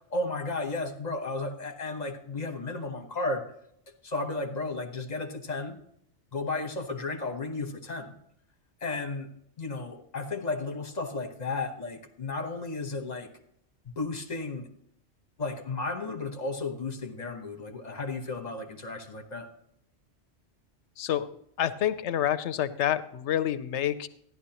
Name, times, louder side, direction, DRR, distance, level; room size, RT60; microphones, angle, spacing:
voice 1, 0.1-3.5 4.0-5.8 6.3-8.2 8.8-9.3 9.6-13.3 14.0-14.7 15.4-19.5, left 3 dB, 40° left, 5 dB, 1.1 m, -33 dB
voice 2, 21.0-21.3 21.6-24.1, left 11 dB, 85° left, 13 dB, 0.9 m, -28 dB
13.5 x 11.0 x 2.9 m, 0.71 s
omnidirectional pair, 1.2 m